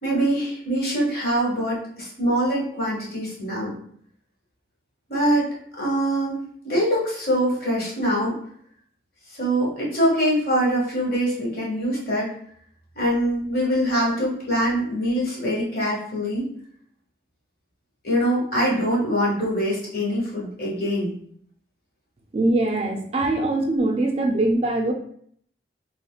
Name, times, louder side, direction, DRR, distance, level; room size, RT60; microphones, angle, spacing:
voice 1, 0.0-3.7 5.1-5.5 5.8-8.4 9.3-12.3 12.9-16.5 18.0-21.2, equal, 55° left, -5 dB, 1.3 m, -23 dB
voice 2, 22.3-24.9, right 2 dB, 35° right, 3 dB, 0.3 m, -22 dB
3.4 x 2.8 x 2.3 m, 0.63 s
head